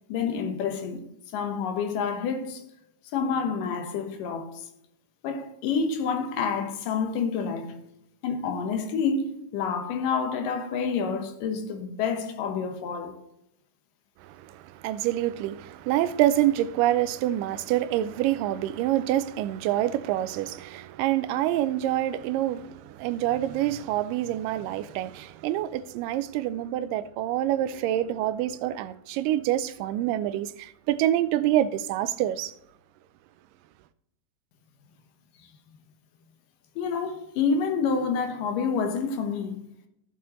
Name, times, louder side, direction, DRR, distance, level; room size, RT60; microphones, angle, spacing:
voice 1, 0.1-1.0 1.3-2.6 3.1-4.6 5.2-7.8 8.2-13.2 36.8-39.6, left 5 dB, 80° left, 2.7 m, -28 dB
voice 2, 14.2-32.5, right 13 dB, 85° right, 2.2 m, -26 dB
14.0 x 7.4 x 3.0 m
omnidirectional pair, 3.8 m